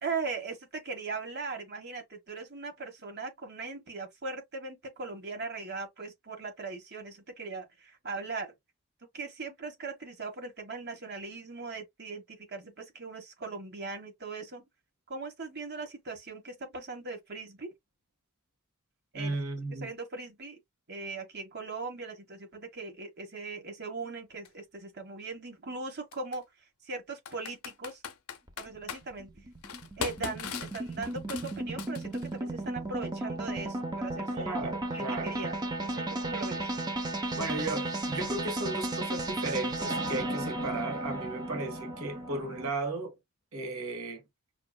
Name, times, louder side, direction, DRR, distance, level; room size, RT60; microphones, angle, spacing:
voice 1, 0.0-8.5 9.1-14.7 15.1-17.7 19.1-19.4 19.8-20.6 20.9-26.4 26.8-28.0 28.6-29.3 30.0-36.7, right 4 dB, 50° right, 1.3 m, -39 dB
voice 2, 19.1-19.9 34.3-35.4 37.3-43.2 43.5-44.2, right 2 dB, 75° right, 1.4 m, -35 dB
Computer keyboard, 24.4-24.5 26.1-26.4 27.3-29.0 29.6-32.3, left 6 dB, 75° left, 0.5 m, -39 dB
sound 1, 28.5-42.7, right 2 dB, 20° right, 0.7 m, -34 dB
5.7 x 2.5 x 2.2 m
head